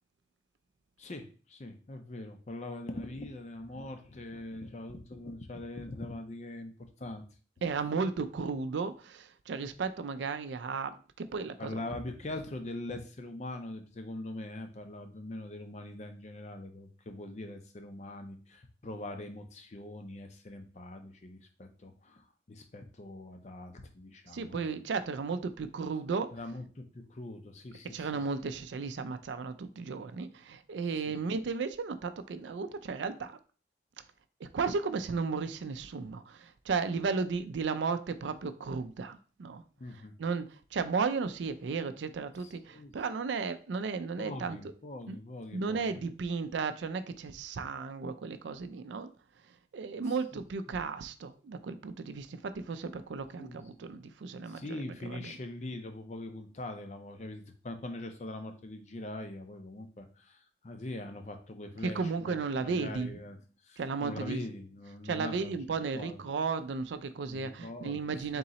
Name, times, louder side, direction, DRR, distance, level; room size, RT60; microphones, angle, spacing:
voice 1, 1.0-7.3 11.6-24.7 26.3-28.1 30.9-31.2 39.8-40.1 42.4-43.0 44.2-46.0 50.1-50.4 53.4-53.9 54.5-65.5 65.9-66.2 67.3-68.4, left 2 dB, 40° left, 0.5 m, -42 dB
voice 2, 7.6-11.7 24.3-26.3 27.9-33.4 34.4-39.6 40.2-40.5 40.7-44.6 45.1-45.2 45.5-49.1 49.7-55.3 61.8-63.2 63.8-64.4 65.0-68.4, right 4 dB, 75° right, 0.4 m, -34 dB
3.8 x 2.9 x 4.0 m
head